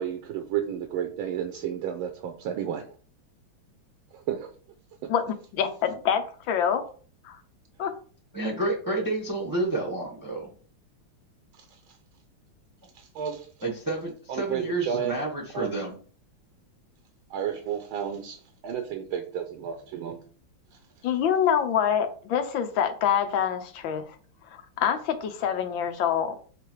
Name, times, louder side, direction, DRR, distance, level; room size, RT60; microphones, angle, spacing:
voice 1, 0.0-3.0 4.1-4.5 5.0-5.1 11.5-11.7 12.9-13.5 14.3-15.2 15.5-15.9 17.3-20.2 20.7-20.8, right 9 dB, 75° right, 7 dB, 1.5 m, -32 dB
voice 2, 5.1-6.8 7.2-7.4 7.8-7.9 21.0-24.0 24.5-26.4, left 8 dB, 70° left, 7 dB, 1.4 m, -26 dB
voice 3, 8.3-10.5 13.6-16.0, right 2 dB, 15° right, -2 dB, 1.0 m, -30 dB
6.7 x 3.4 x 4.6 m, 0.42 s
omnidirectional pair, 2.4 m